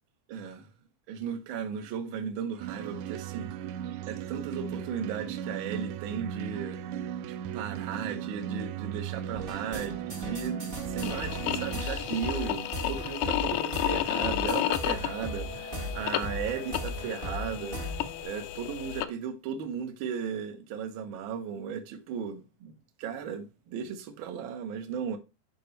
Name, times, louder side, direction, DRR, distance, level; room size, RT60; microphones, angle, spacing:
voice 1, 0.3-0.7 1.1-3.5 4.1-6.8 7.2-25.2, right 7 dB, 60° right, 1.3 m, -36 dB
sound 1, 2.6-11.8, right 9 dB, 80° right, 1.7 m, -37 dB
sound 2, 9.3-18.2, equal, 35° right, 0.8 m, -38 dB
sound 3, 11.0-19.0, left 13 dB, 75° left, 2.0 m, -32 dB
11.0 x 5.1 x 3.2 m
omnidirectional pair, 3.7 m